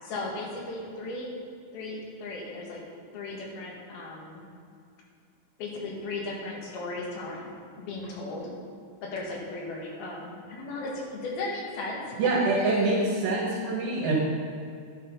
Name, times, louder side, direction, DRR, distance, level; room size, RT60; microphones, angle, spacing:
voice 1, 0.0-1.3 1.7-2.8 3.1-4.4 5.6-8.5 9.0-12.1 12.5-13.1, left 2 dB, 85° left, -2 dB, 3.7 m, -36 dB
voice 2, 12.2-14.1, right 2 dB, 75° right, -4 dB, 3.1 m, -25 dB
11.0 x 7.2 x 5.5 m, 2.4 s
omnidirectional pair, 4.2 m